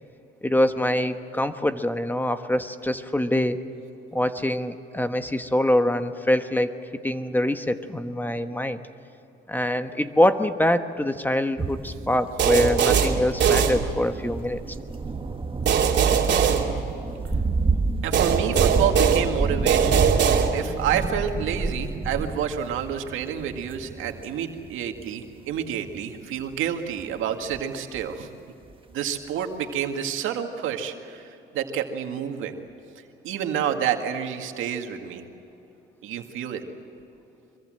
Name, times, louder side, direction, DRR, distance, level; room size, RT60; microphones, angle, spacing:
voice 1, 0.4-3.6 4.1-6.7 7.0-8.8 9.5-14.6, left 1 dB, 10° left, 9 dB, 1.3 m, -24 dB
sound 1, 11.6-25.3 25.6-26.6 27.0-27.7 27.9-28.2 28.7-28.8, right 3 dB, 25° right, 1.8 m, -30 dB
sound 2, 12.4-14.3 15.6-17.4 18.1-20.9, right 7 dB, 65° right, 2.8 m, -21 dB
voice 2, 18.0-20.0 20.5-28.3 28.9-32.6 33.2-35.2 36.0-36.6, right 8 dB, 90° right, 5 dB, 2.0 m, -29 dB
25.0 x 23.0 x 7.7 m, 2.9 s
cardioid pair, 90°, 20 cm